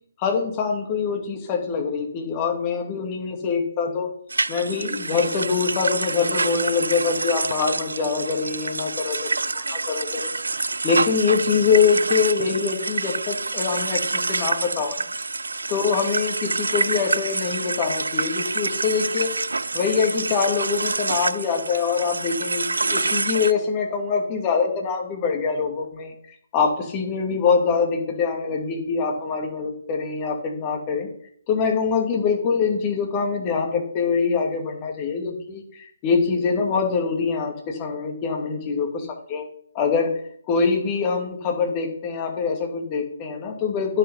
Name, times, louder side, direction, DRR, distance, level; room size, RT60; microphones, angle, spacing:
voice 1, 0.2-4.1 4.5-9.3 9.5-10.1 10.8-14.0 14.3-15.0 15.7-19.3 19.7-26.1 26.5-31.1 31.5-39.4 39.7-40.1 40.5-44.0, left 5 dB, 25° left, 2 dB, 2.4 m, -24 dB
sound 1, 4.3-23.5, right 3 dB, 70° right, 0.4 m, -27 dB
9.7 x 7.9 x 5.5 m, 0.62 s
figure-of-eight pair, 140°, 0 cm